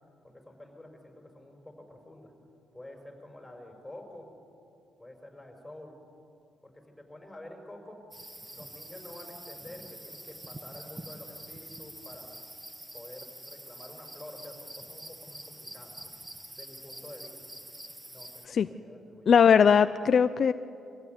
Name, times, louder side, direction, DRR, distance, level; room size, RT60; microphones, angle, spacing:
voice 1, 0.2-2.3 2.7-4.3 5.0-6.0 6.6-8.0 8.5-12.4 12.9-16.1 16.5-17.3 18.1-19.3, left 1 dB, 5° left, 2 dB, 5.5 m, -48 dB
sound 1, 8.1-18.5, right 1 dB, 10° right, 1.4 m, -46 dB
voice 2, 19.3-20.5, left 7 dB, 55° left, 12 dB, 0.5 m, -20 dB
24.5 x 16.0 x 9.5 m, 2.6 s
cardioid pair, 90°, 0 cm